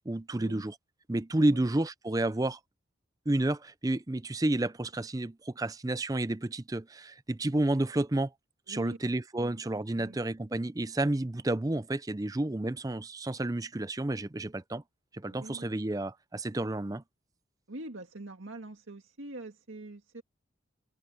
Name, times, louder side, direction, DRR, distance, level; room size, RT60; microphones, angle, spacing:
voice 1, 0.1-0.7 1.1-2.6 3.3-8.3 8.7-14.8 15.1-17.0, right 1 dB, 15° right, 0.5 m, -30 dB
voice 2, 8.7-9.0 9.4-9.6 10.0-10.2 15.3-15.7 17.7-20.2, right 2 dB, 80° right, 2.0 m, -44 dB
head